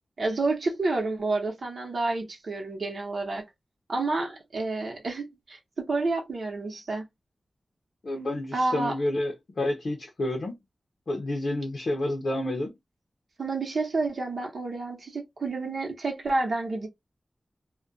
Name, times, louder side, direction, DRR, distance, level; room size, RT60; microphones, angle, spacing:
voice 1, 0.2-3.4 3.9-7.0 8.5-9.0 13.4-16.9, right 3 dB, 70° right, 0.9 m, -29 dB
voice 2, 8.0-10.6 11.1-12.7, left 1 dB, 65° left, 0.6 m, -29 dB
2.3 x 2.2 x 2.5 m
wide cardioid pair, 115°, 0 cm